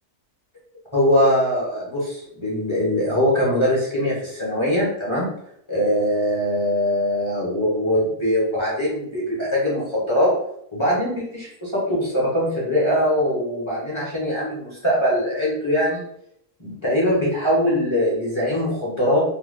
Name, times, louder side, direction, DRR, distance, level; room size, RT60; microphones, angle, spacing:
voice 1, 0.9-5.3 5.7-10.3 10.7-16.0 16.6-19.2, equal, 25° left, -7 dB, 0.8 m, -22 dB
2.8 x 2.2 x 3.6 m, 0.73 s
omnidirectional pair, 1.7 m